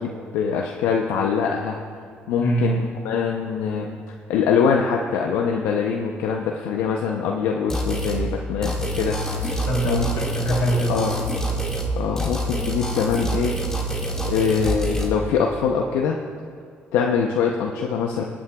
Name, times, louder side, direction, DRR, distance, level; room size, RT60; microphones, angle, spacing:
voice 1, 0.0-1.8 2.3-4.0 4.3-9.5 9.8-10.1 10.9-11.1 12.0-13.6 14.2-16.2 16.9-18.2, left 6 dB, 90° left, 1 dB, 0.6 m, -23 dB
voice 2, 2.4-2.8 9.4-11.2, right 1 dB, 65° left, -2 dB, 3.1 m, -24 dB
sound 1, 7.7-8.2 8.6-11.9 12.2-15.1, right 1 dB, 15° left, 1.8 m, -26 dB
22.5 x 8.7 x 2.3 m, 2.1 s
cardioid pair, 85°, 4 cm